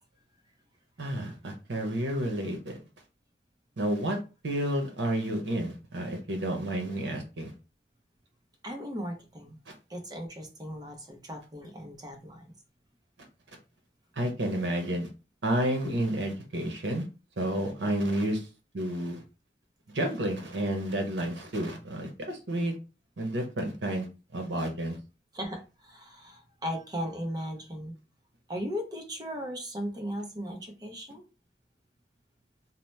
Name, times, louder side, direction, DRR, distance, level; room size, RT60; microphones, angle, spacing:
voice 1, 1.0-2.8 3.8-4.2 4.4-7.5 14.2-15.1 15.4-17.0 17.4-18.4 18.7-19.2 19.9-22.7 23.2-24.1 24.3-25.0, right 1 dB, 85° right, 3 dB, 0.7 m, -30 dB
voice 2, 8.6-9.6 9.9-12.5 25.3-27.9 28.5-31.2, equal, 25° right, 3 dB, 0.6 m, -37 dB
2.8 x 2.0 x 3.1 m, 0.31 s
head